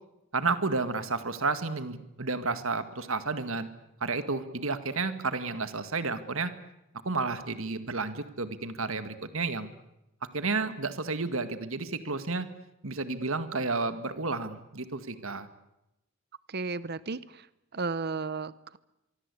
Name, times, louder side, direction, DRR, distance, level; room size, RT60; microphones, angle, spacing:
voice 1, 0.3-3.7 4.0-6.5 7.1-9.7 10.3-12.5 12.8-15.5, right 3 dB, 65° right, 11 dB, 2.0 m, -31 dB
voice 2, 16.5-17.4 17.7-18.8, right 4 dB, 45° right, 17 dB, 0.9 m, -34 dB
24.5 x 24.0 x 8.5 m, 0.89 s
head